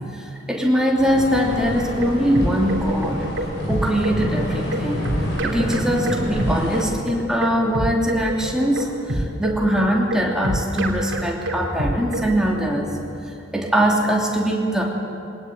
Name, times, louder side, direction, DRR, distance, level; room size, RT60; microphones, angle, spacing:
voice 1, 0.5-3.2 3.7-5.1 5.4-12.9 13.5-14.8, equal, 5° right, -2 dB, 2.9 m, -21 dB
sound 1, 1.0-6.8, equal, 60° left, 7.7 m, -28 dB
sound 2, 1.7-12.3, right 1 dB, 60° right, 2.9 m, -27 dB
22.0 x 19.0 x 9.2 m, 2.7 s
head